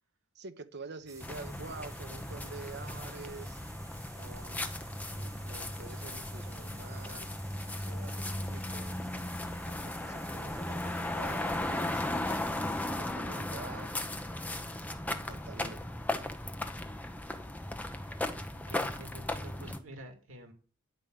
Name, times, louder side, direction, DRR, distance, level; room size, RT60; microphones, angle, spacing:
voice 1, 0.3-3.6 4.2-4.7 5.1-7.3 7.6-9.1 9.6-12.1 12.6-14.0 15.1-15.8, right 3 dB, 55° right, 1.0 m, -47 dB
sound 1, 1.1-12.9, right 3 dB, 15° right, 1.4 m, -54 dB
sound 2, 1.2-19.8, left 1 dB, 10° left, 0.8 m, -36 dB
voice 2, 17.9-20.5, right 1 dB, 75° right, 2.5 m, -50 dB
10.5 x 5.4 x 7.9 m
head